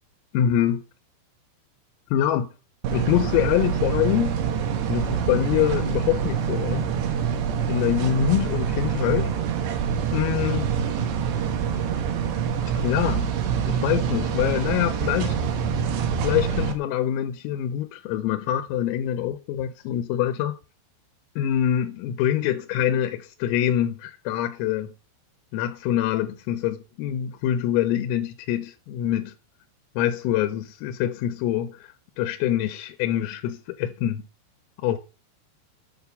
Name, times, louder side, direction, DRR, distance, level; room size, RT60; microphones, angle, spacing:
voice 1, 0.3-0.8 2.1-2.5 2.9-4.4 4.9-6.9 7.7-9.4 10.1-10.7 12.8-13.3 13.7-15.4 16.2-20.6 21.4-24.9 25.5-29.3 30.0-34.2 34.8-35.0, left 11 dB, 85° left, 3.5 m, -25 dB
sound 1, 2.8-16.7, right 7 dB, 65° right, 3.3 m, -25 dB
9.0 x 7.5 x 7.0 m
omnidirectional pair, 6.0 m